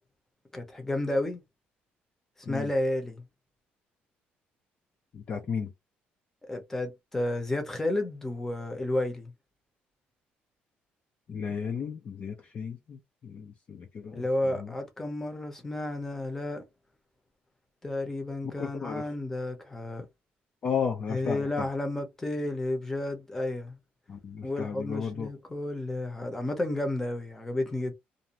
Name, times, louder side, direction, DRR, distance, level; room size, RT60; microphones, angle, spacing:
voice 1, 0.5-1.4 2.5-3.2 6.5-9.3 14.1-16.6 17.8-20.1 21.1-23.8 24.4-27.9, left 1 dB, 10° left, 0.8 m, -31 dB
voice 2, 5.1-5.7 11.3-14.7 18.6-19.1 20.6-21.7 24.1-25.3, left 6 dB, 40° left, 0.5 m, -34 dB
2.6 x 2.1 x 2.9 m
cardioid pair, 145°, 4 cm